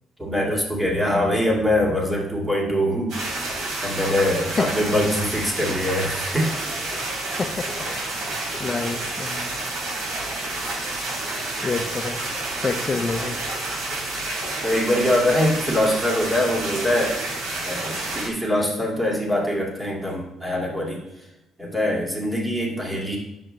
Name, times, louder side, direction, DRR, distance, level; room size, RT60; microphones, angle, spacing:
voice 1, 0.2-3.2 3.8-6.5 14.6-17.2 17.6-21.0 21.6-23.2, left 1 dB, 10° right, -2 dB, 2.4 m, -23 dB
sound 1, 3.1-18.3, right 2 dB, 75° right, 3.5 m, -29 dB
voice 2, 7.4-7.9 8.6-9.5 11.6-12.2 12.6-13.4, left 4 dB, 30° left, 8 dB, 0.9 m, -27 dB
10.0 x 7.5 x 3.4 m, 0.94 s
cardioid pair, 110°, 0 cm